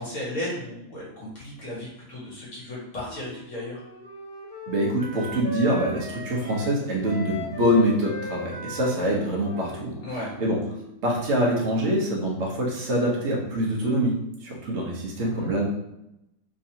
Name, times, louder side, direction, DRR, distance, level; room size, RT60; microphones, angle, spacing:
voice 1, 0.0-3.8 10.0-10.3 15.2-15.5, left 1 dB, 50° left, -6 dB, 1.6 m, -35 dB
Wind instrument woodwind instrument, 3.0-11.0, equal, 35° left, 1.2 m, -38 dB
voice 2, 4.7-9.9 10.4-10.6 11.0-14.1 14.4-15.6, equal, 50° right, -3 dB, 1.1 m, -24 dB
3.5 x 3.1 x 2.8 m, 0.86 s
omnidirectional pair, 1.7 m